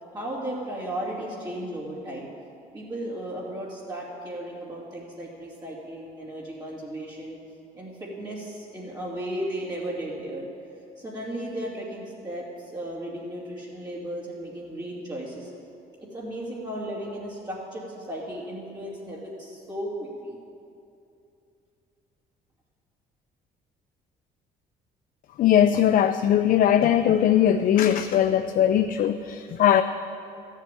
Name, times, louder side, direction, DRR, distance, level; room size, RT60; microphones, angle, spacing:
voice 1, 0.1-2.3 2.7-7.4 7.7-10.5 11.0-15.5 16.0-20.4, right 1 dB, 25° right, -7 dB, 2.7 m, -35 dB
voice 2, 25.4-29.8, left 10 dB, 55° left, 9 dB, 0.5 m, -20 dB
13.5 x 7.5 x 9.2 m, 2.6 s
cardioid pair, 110°, 17 cm